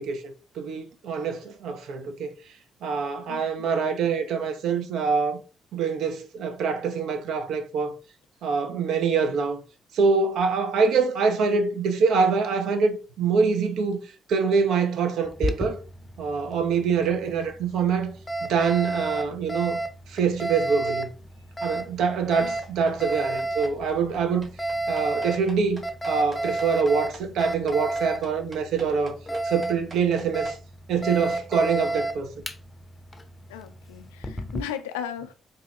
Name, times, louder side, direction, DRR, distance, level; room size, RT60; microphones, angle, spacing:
voice 1, 0.0-2.3 2.8-5.4 5.7-7.9 8.4-9.6 9.9-14.0 14.3-15.8 16.2-18.1 18.5-19.8 20.1-21.1 21.6-24.5 24.9-29.2 29.4-30.6 30.9-32.3, right 5 dB, 60° right, 0.5 m, -25 dB
voice 2, 3.3-3.7 22.4-22.6 33.5-35.3, left 9 dB, 70° left, 0.3 m, -36 dB
Alarm, 15.2-34.6, right 1 dB, 25° left, 0.6 m, -32 dB
sound 1, 22.6-30.6, right 2 dB, 35° right, 1.5 m, -45 dB
3.8 x 2.7 x 3.2 m
figure-of-eight pair, 40°, 0 cm